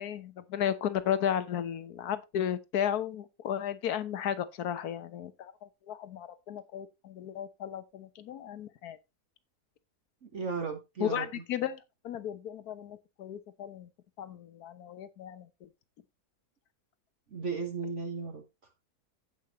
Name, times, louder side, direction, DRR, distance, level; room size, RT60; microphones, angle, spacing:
voice 1, 0.0-9.0 11.0-13.9 14.2-15.7, left 9 dB, 75° left, 1.4 m, -34 dB
voice 2, 10.2-11.3 17.3-18.4, right 5 dB, 50° right, 1.5 m, -35 dB
15.5 x 5.4 x 3.0 m
omnidirectional pair, 1.7 m